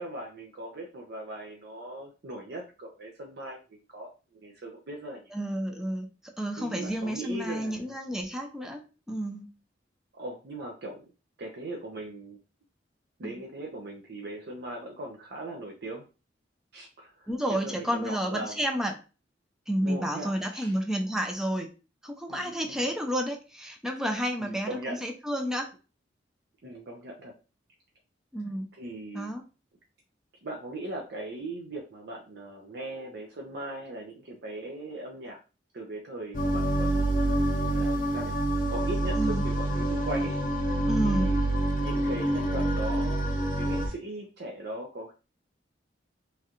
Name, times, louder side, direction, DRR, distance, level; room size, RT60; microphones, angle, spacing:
voice 1, 0.0-5.4 6.6-7.9 10.1-11.1 11.4-12.4 13.2-16.0 16.7-18.7 19.8-20.7 22.3-22.9 24.4-25.0 26.6-27.3 28.8-29.3 30.4-35.4 35.7-38.3 38.7-40.4 41.0-41.4 41.8-45.1, right 1 dB, 60° right, 0 dB, 0.6 m, -39 dB
voice 2, 5.3-6.1 6.4-9.5 13.2-13.4 17.3-19.0 19.7-21.7 22.0-25.7 28.3-28.7 29.1-29.4 39.2-39.5 40.9-41.3, equal, 5° right, 2 dB, 0.5 m, -30 dB
sound 1, 36.3-43.9, right 1 dB, 45° left, 0.7 m, -27 dB
3.2 x 2.4 x 2.9 m, 0.33 s
head